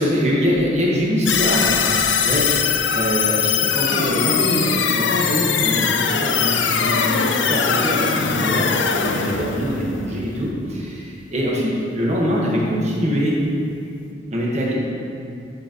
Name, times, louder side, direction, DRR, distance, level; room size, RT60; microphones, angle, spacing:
voice 1, 0.0-2.5 2.9-13.3 14.3-14.8, equal, 40° right, -4 dB, 1.5 m, -23 dB
sound 1, 1.3-10.5, left 6 dB, 85° left, 0.5 m, -21 dB
8.3 x 7.7 x 3.1 m, 2.5 s
head